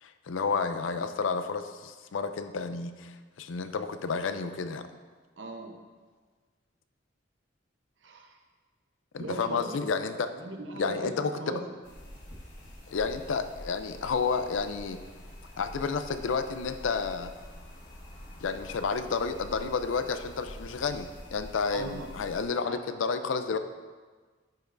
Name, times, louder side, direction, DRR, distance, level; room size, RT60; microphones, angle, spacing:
voice 1, 0.0-4.9 9.1-10.3 10.7-11.5 12.9-15.0 15.5-17.3 18.4-23.6, left 5 dB, 85° left, 10 dB, 0.4 m, -31 dB
voice 2, 5.4-5.7 8.0-8.4 9.2-9.7 10.3-11.6 21.7-22.1 22.7-23.3, right 2 dB, 70° right, 3 dB, 0.8 m, -39 dB
sound 1, 11.8-22.5, equal, 65° left, 1.4 m, -46 dB
10.5 x 5.3 x 2.5 m, 1.4 s
head